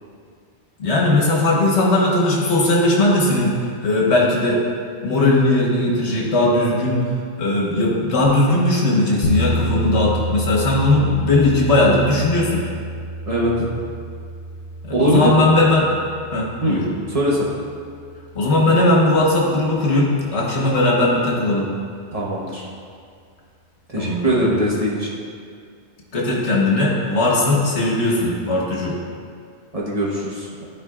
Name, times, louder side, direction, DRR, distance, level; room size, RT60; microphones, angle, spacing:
voice 1, 0.8-3.6 3.8-4.6 5.0-7.1 7.4-12.6 14.8-15.9 16.3-16.8 18.3-21.7 24.0-24.5 26.1-29.0, left 2 dB, 70° left, -4 dB, 1.5 m, -18 dB
sound 1, 9.2-19.3, right 1 dB, 90° left, 0.9 m, -29 dB
voice 2, 13.3-13.7 14.9-15.3 16.6-16.8 17.1-17.5 22.1-22.7 23.9-25.1 29.7-30.7, right 1 dB, 30° right, -6 dB, 1.1 m, -21 dB
12.5 x 4.5 x 2.5 m, 2.3 s
omnidirectional pair, 1.2 m